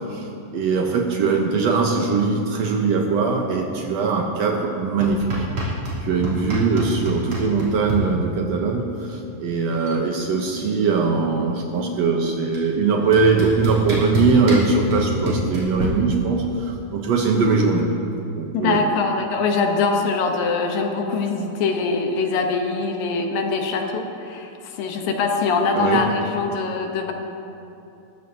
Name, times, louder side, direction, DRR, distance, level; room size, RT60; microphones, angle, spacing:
voice 1, 0.1-5.3 6.0-17.9 18.3-18.8 25.7-26.1, right 4 dB, 75° right, 1 dB, 1.5 m, -21 dB
sound 1, 5.0-6.0 6.2-8.0 9.3-9.4 9.6-10.0 10.3-11.7 12.5-12.6 13.1-15.8, right 1 dB, 45° right, 4.2 m, -27 dB
voice 2, 18.5-27.1, left 4 dB, 75° left, 3 dB, 2.6 m, -23 dB
19.5 x 14.5 x 2.8 m, 2.8 s
omnidirectional pair, 4.1 m